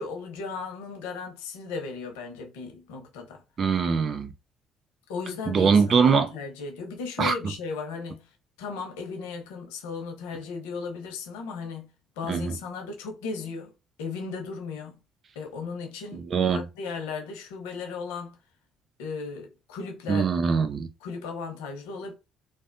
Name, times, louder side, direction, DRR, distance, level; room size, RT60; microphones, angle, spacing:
voice 1, 0.0-3.4 5.1-8.3 8.6-11.9 12.2-13.7 14.0-15.0 15.3-18.4 19.0-20.3 21.0-22.1, left 4 dB, 90° left, 0.9 m, -36 dB
voice 2, 3.6-4.3 5.5-6.3 7.2-7.3 12.3-12.6 16.1-16.6 20.1-20.9, right 5 dB, 50° right, 0.6 m, -22 dB
3.4 x 2.1 x 2.6 m
supercardioid pair, 65°, 0 cm